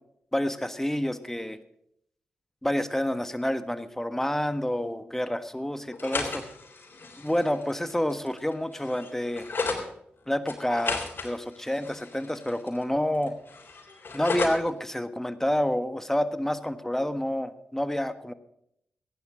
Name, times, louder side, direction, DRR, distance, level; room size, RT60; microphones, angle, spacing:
voice 1, 0.3-1.6 2.6-6.4 7.2-9.5 10.3-13.3 14.1-18.3, left 1 dB, 10° left, 11 dB, 1.4 m, -28 dB
sound 1, 5.9-9.8 10.5-12.8 13.1-14.7, left 4 dB, 55° left, 3.5 m, -35 dB
15.0 x 10.5 x 6.3 m, 0.75 s
supercardioid pair, 40°, 4 cm